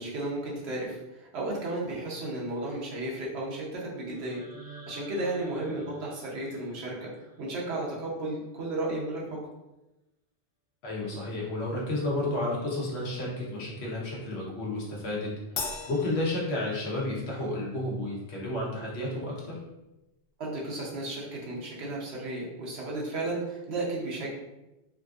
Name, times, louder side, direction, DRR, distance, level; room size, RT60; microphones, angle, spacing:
voice 1, 0.0-4.4 4.9-9.4 20.4-24.3, right 2 dB, 85° right, -3 dB, 1.1 m, -34 dB
Myst Book Toll (in Homage to one of my favorite games), 4.1-8.1, right 3 dB, 20° right, 0.4 m, -50 dB
voice 2, 10.8-15.3 15.9-19.6, left 1 dB, 80° left, -4 dB, 1.2 m, -31 dB
Crash cymbal, 15.6-17.2, left 4 dB, 60° left, 0.7 m, -38 dB
3.5 x 2.5 x 2.4 m, 0.98 s
omnidirectional pair, 1.1 m